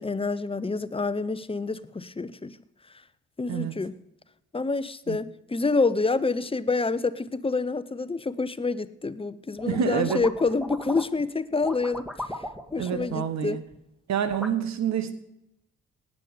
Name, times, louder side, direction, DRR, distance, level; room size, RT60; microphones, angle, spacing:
voice 1, 0.0-2.6 3.4-3.9 4.5-12.1 12.7-13.6, left 3 dB, 15° left, 15 dB, 0.8 m, -27 dB
sound 1, 9.6-9.8 10.1-11.2 11.5-13.7 14.3-14.5, left 1 dB, ahead, 1.8 m, -37 dB
voice 2, 9.6-10.2 12.8-13.6 14.1-15.1, right 8 dB, 60° right, 11 dB, 1.5 m, -27 dB
18.0 x 7.0 x 5.1 m, 0.81 s
hypercardioid pair, 45°, 31 cm